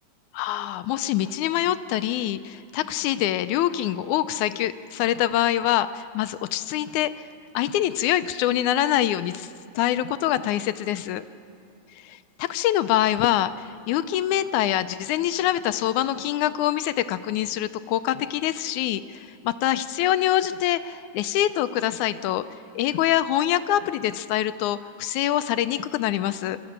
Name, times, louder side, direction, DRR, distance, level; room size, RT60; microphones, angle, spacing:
voice 1, 0.3-7.3 7.5-9.5 9.8-11.3 12.0-22.4 22.8-26.6, left 12 dB, 80° left, 12 dB, 2.0 m, -25 dB
24.5 x 13.5 x 8.8 m, 2.6 s
omnidirectional pair, 3.4 m